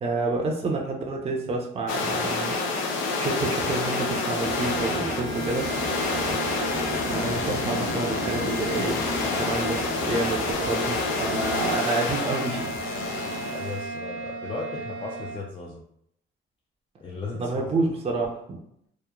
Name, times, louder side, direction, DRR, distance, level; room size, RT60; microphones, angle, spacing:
voice 1, 0.0-2.6 3.2-5.7 7.1-9.0 9.4-12.8 17.4-18.6, right 3 dB, 30° right, 0 dB, 0.5 m, -29 dB
sound 1, 1.9-13.9, left 3 dB, 85° left, 0.4 m, -29 dB
sound 2, 3.6-15.4, right 3 dB, 65° right, 0.8 m, -36 dB
sound 3, 4.4-11.8, left 1 dB, 55° left, 1.0 m, -36 dB
voice 2, 6.1-6.4 13.4-15.8 17.0-17.8, left 3 dB, 25° left, -2 dB, 0.4 m, -36 dB
3.0 x 2.1 x 2.2 m, 0.72 s
cardioid pair, 90°, 20 cm